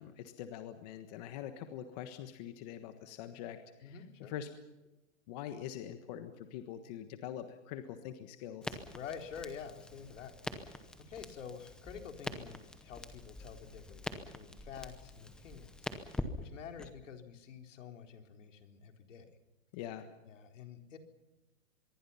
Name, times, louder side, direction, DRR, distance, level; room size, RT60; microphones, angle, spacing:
voice 1, 0.0-4.5 5.3-8.8 19.7-20.1, left 10 dB, 30° left, 8 dB, 1.5 m, -44 dB
voice 2, 3.8-4.3 8.9-19.4 20.3-21.0, left 7 dB, 65° left, 5 dB, 4.1 m, -48 dB
Crackle, 8.6-16.9, left 2 dB, ahead, 0.8 m, -45 dB
25.0 x 22.5 x 5.7 m, 1.0 s
hypercardioid pair, 165°, 40 cm